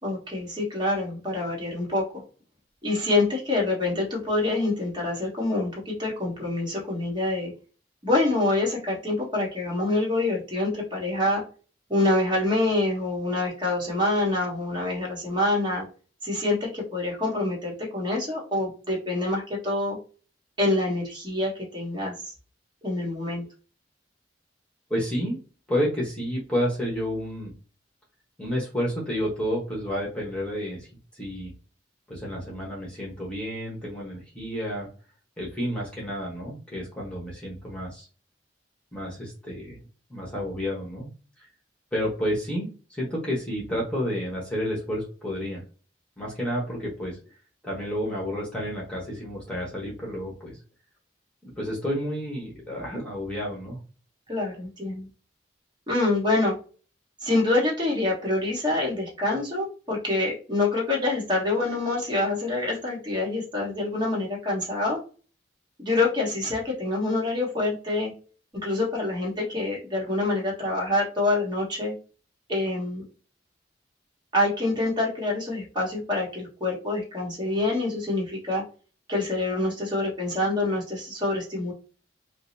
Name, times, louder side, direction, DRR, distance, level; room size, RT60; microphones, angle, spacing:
voice 1, 0.0-2.0 2.8-7.5 8.0-11.4 11.9-15.8 16.2-20.0 20.6-22.3 22.8-23.4 54.3-55.1 55.9-56.6 57.2-65.0 65.8-68.1 68.6-71.9 72.5-73.0 74.3-78.6 79.1-81.7, left 2 dB, 25° right, -2 dB, 1.3 m, -26 dB
voice 2, 24.9-25.4 25.7-27.5 28.4-30.9 31.1-31.5 32.1-34.9 35.4-38.1 38.9-39.8 40.1-41.1 41.9-45.6 46.2-47.2 47.6-50.6 51.4-53.8, equal, 5° left, -4 dB, 1.1 m, -30 dB
5.0 x 2.0 x 2.7 m, 0.37 s
head